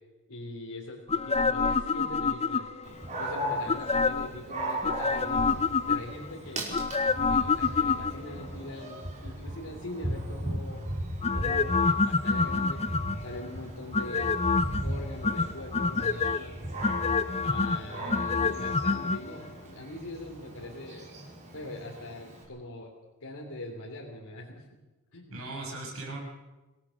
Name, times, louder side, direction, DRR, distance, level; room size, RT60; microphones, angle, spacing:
voice 1, 0.3-2.7 3.2-6.7 7.3-10.9 11.3-12.8 13.2-14.4 14.8-16.6 17.4-21.1 21.5-22.9 23.2-24.6 25.1-25.4, left 1 dB, 80° left, -1 dB, 3.1 m, -42 dB
sound 1, 1.1-2.9 3.7-4.4 4.8-6.3 6.7-8.4 11.2-13.3 13.9-14.8 15.2-16.4 16.8-19.2 19.5-19.6, left 4 dB, 30° left, 0.6 m, -27 dB
Dog, 2.8-22.4, right 1 dB, 35° right, 5.2 m, -38 dB
voice 2, 18.0-18.5 25.3-26.2, right 2 dB, 65° right, -1 dB, 6.9 m, -39 dB
25.0 x 17.5 x 6.4 m, 1.1 s
head